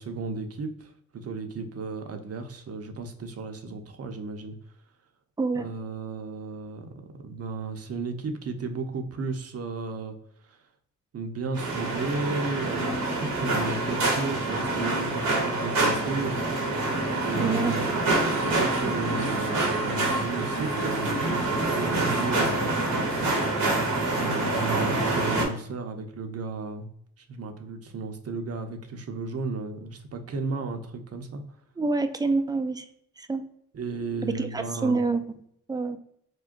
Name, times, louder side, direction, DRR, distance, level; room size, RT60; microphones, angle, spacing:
voice 1, 0.0-4.5 5.5-6.9 7.2-10.1 10.4-10.6 11.1-16.4 17.2-23.3 24.1-26.9 27.2-31.4 33.7-35.0, right 4 dB, 45° right, 6 dB, 0.6 m, -34 dB
voice 2, 5.4-5.7 17.4-17.8 31.8-32.9 33.2-33.4 34.2-35.4 35.7-36.0, right 3 dB, 15° right, 8 dB, 0.3 m, -27 dB
sound 1, 11.5-25.4, right 2 dB, 80° right, 1.1 m, -26 dB
3.7 x 2.2 x 2.5 m, 0.71 s
cardioid pair, 60°, 34 cm